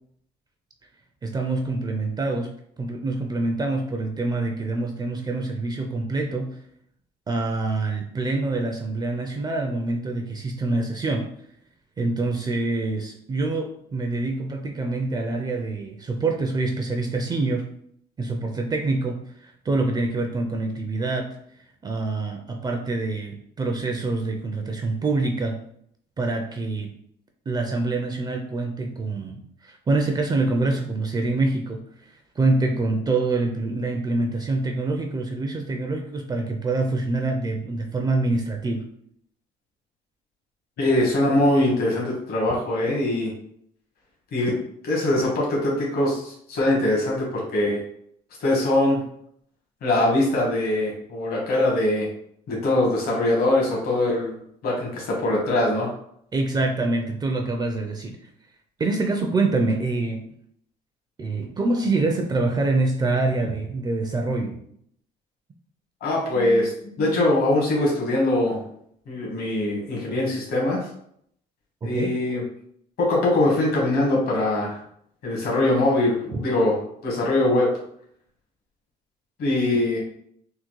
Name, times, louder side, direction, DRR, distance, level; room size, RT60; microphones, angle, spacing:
voice 1, 1.2-2.5 2.8-6.6 7.3-11.2 12.0-17.7 18.2-21.4 21.8-25.6 26.2-26.9 27.5-31.8 32.1-38.8 56.3-58.1 58.8-60.2 61.2-64.6 71.8-72.2, right 2 dB, 25° right, 3 dB, 0.4 m, -25 dB
voice 2, 40.8-43.3 44.3-44.5 44.8-47.8 48.4-49.0 49.8-52.1 52.5-54.3 54.6-55.9 66.0-66.7 67.0-68.6 69.1-70.9 71.8-72.4 73.0-74.8 75.2-76.7 77.0-77.7 79.4-80.0, left 1 dB, 65° left, -3 dB, 1.3 m, -22 dB
3.6 x 2.0 x 3.0 m, 0.68 s
cardioid pair, 110°, 17 cm